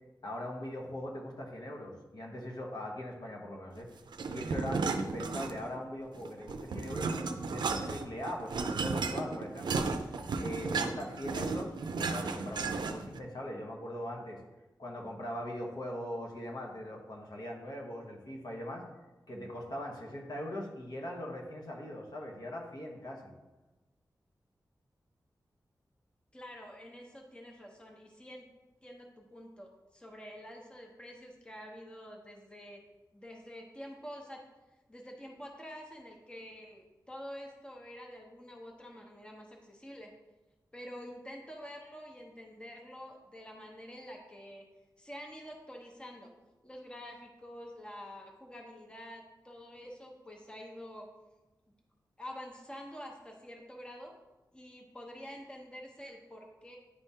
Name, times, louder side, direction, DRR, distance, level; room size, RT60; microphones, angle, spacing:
voice 1, 0.2-3.9 4.3-9.8 10.4-14.4 14.8-18.8 19.3-23.3, left 1 dB, 65° left, -1 dB, 1.1 m, -41 dB
sound 1, 4.1-5.8 6.2-13.2, right 4 dB, 90° right, 0.4 m, -34 dB
voice 2, 26.3-28.5 28.8-32.8 33.1-34.4 34.9-40.1 40.7-44.6 45.0-46.3 46.6-51.1 52.2-54.1 54.5-56.8, equal, 15° left, 0 dB, 0.8 m, -47 dB
9.9 x 3.4 x 2.8 m, 1.1 s
wide cardioid pair, 105°, 7 cm